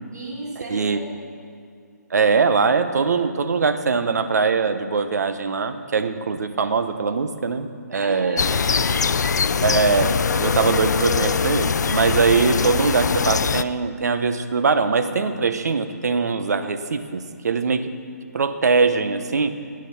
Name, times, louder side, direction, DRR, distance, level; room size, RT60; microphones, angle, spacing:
voice 1, 0.1-1.3 7.9-9.0, right 2 dB, 80° right, -4 dB, 4.7 m, -35 dB
voice 2, 2.1-8.4 9.6-17.9 18.3-19.5, right 5 dB, 65° right, 9 dB, 1.1 m, -22 dB
sound 1, 8.4-13.6, left 5 dB, 75° left, 0.5 m, -22 dB
19.0 x 9.0 x 5.7 m, 2.2 s
hypercardioid pair, 155°, 9 cm